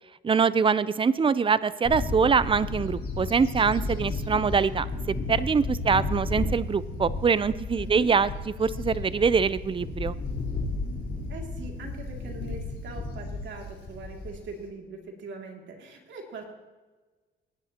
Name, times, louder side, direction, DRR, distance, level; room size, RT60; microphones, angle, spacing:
voice 1, 0.2-8.3 8.6-10.2, right 5 dB, 25° right, 16 dB, 0.5 m, -24 dB
Bird / Wind, 1.8-14.6, left 3 dB, 55° left, 4.4 m, -33 dB
voice 2, 5.7-6.2 7.7-8.1 11.3-16.5, right 4 dB, 70° right, 1 dB, 2.6 m, -42 dB
18.5 x 10.0 x 2.9 m, 1.3 s
cardioid pair, 90°, 20 cm